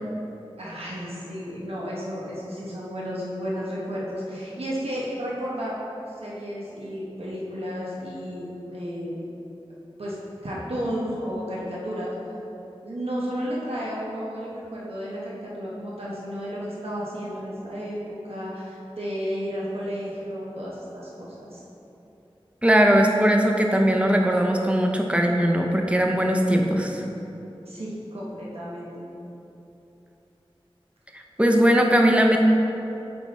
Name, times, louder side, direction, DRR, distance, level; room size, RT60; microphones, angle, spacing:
voice 1, 0.6-5.8 6.1-9.2 10.0-10.2 10.4-12.1 12.8-21.6 27.7-29.0, equal, 80° right, -6 dB, 1.1 m, -32 dB
voice 2, 22.6-27.0 31.1-32.4, equal, 10° right, 1 dB, 0.7 m, -20 dB
8.3 x 3.5 x 4.1 m, 2.9 s
wide cardioid pair, 45°, 10 cm